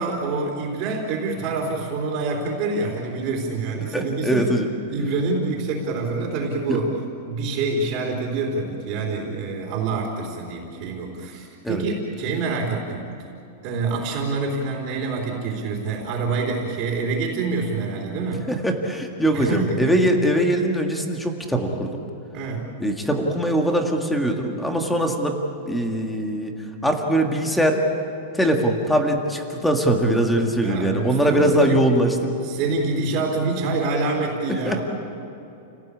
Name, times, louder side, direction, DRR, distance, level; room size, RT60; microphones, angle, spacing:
voice 1, 0.0-4.5 4.9-6.9 7.3-13.1 13.6-18.4 19.3-20.4 22.3-22.7 30.6-31.8 32.4-34.8, right 3 dB, 30° right, -2 dB, 3.9 m, -26 dB
voice 2, 3.8-4.7 6.7-6.8 11.6-11.8 18.5-22.0 22.8-26.5 26.8-27.8 28.3-32.4 34.5-34.8, right 1 dB, 5° left, 3 dB, 1.9 m, -22 dB
30.0 x 18.5 x 8.6 m, 2.9 s
supercardioid pair, 170°, 0 cm